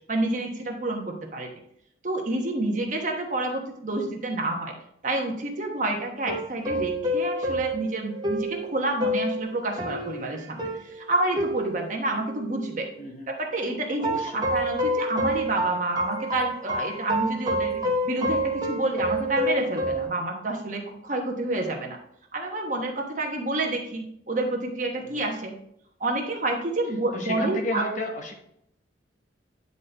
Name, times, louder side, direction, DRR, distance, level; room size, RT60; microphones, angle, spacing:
voice 1, 0.1-1.5 2.0-4.7 5.0-12.9 13.3-22.0 22.3-25.5 26.0-27.8, right 2 dB, 40° right, 1 dB, 1.2 m, -29 dB
sound 1, 6.3-12.9 14.0-20.1, equal, 20° right, 1.2 m, -28 dB
voice 2, 13.0-13.3 14.0-14.4 25.0-25.3 27.1-28.3, left 1 dB, 40° left, 2 dB, 1.0 m, -32 dB
9.4 x 4.1 x 3.4 m, 0.72 s
head